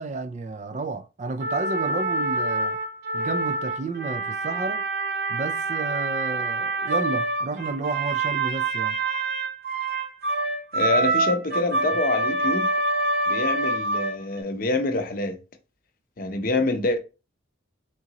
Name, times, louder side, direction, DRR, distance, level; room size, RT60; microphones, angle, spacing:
voice 1, 0.0-2.8 3.1-4.8 5.3-9.0, right 3 dB, 35° right, 0.3 m, -31 dB
sound 1, 1.4-14.4, right 2 dB, 55° right, 0.7 m, -26 dB
voice 2, 10.7-12.7 13.3-15.4 16.2-17.0, left 2 dB, 45° left, 0.6 m, -26 dB
3.8 x 3.7 x 2.8 m
head